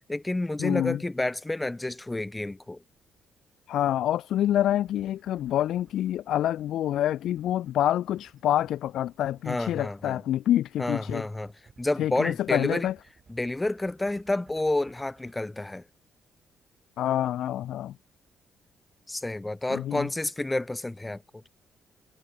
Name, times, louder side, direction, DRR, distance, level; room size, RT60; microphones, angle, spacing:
voice 1, 0.1-2.8 9.5-10.2 10.8-11.5 11.8-12.9 13.3-15.8 19.1-21.2, left 2 dB, 15° left, 1.0 m, -29 dB
voice 2, 0.6-1.0 3.7-11.2 12.0-12.9 17.0-17.9 19.7-20.1, left 12 dB, 75° left, 0.3 m, -27 dB
sound 1, 4.3-15.4, right 5 dB, 40° right, 6.1 m, -60 dB
cardioid pair, 90°, 0 cm